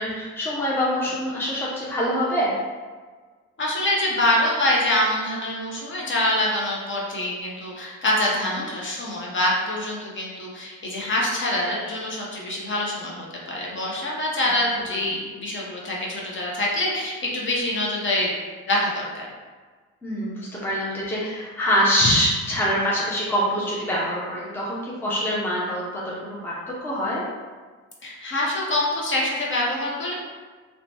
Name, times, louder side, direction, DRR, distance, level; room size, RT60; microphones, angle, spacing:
voice 1, 0.0-2.6 20.0-27.3, equal, 5° left, -6 dB, 0.6 m, -25 dB
voice 2, 3.6-18.3 18.7-19.3 28.0-30.1, left 1 dB, 40° left, -4 dB, 0.8 m, -25 dB
2.8 x 2.2 x 2.7 m, 1.4 s
cardioid pair, 90°, 30 cm